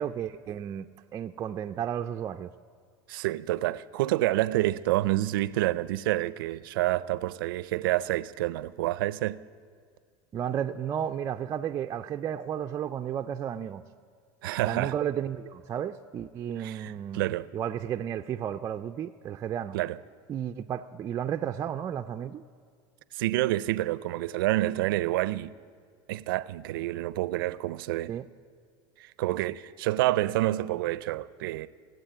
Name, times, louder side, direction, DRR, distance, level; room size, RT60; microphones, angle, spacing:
voice 1, 0.0-2.5 10.3-13.8 14.7-17.3 17.5-19.8 20.3-22.4 28.1-28.2, right 9 dB, 30° right, 0.4 m, -33 dB
voice 2, 3.1-9.4 14.4-14.9 16.6-17.5 19.7-20.0 23.1-25.5 26.1-28.1 29.0-31.7, right 16 dB, 90° right, 0.5 m, -28 dB
17.0 x 8.1 x 9.1 m
supercardioid pair, 135°, 11 cm